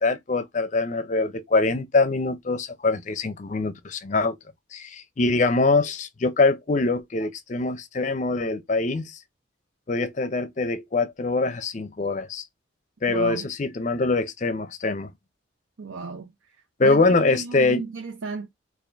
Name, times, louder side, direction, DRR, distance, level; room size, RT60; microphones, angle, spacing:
voice 1, 0.0-4.4 4.7-9.1 9.9-12.4 13.0-15.1 16.8-17.8, left 3 dB, 35° left, 0.5 m, -23 dB
voice 2, 13.1-13.5 15.8-16.3 16.8-18.5, right 4 dB, 85° right, 0.6 m, -34 dB
3.8 x 2.5 x 3.4 m
head